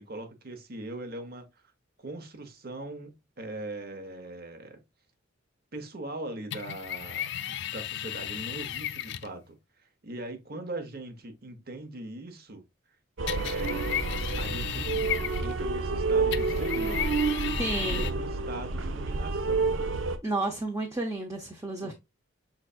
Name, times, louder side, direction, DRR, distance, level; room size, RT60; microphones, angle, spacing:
voice 1, 0.0-1.6 2.0-4.8 5.7-12.6 13.3-13.8 14.4-15.0 15.4-17.1 17.9-19.8 21.8-21.9, right 2 dB, 50° right, 1.0 m, -41 dB
sound 1, 6.5-9.3 13.3-15.7 16.3-18.1, left 11 dB, 60° left, 0.4 m, -35 dB
sound 2, 13.2-20.2, right 3 dB, 75° right, 0.6 m, -29 dB
voice 2, 17.6-18.1 20.2-21.9, right 2 dB, 15° right, 0.6 m, -31 dB
5.4 x 4.0 x 2.4 m
head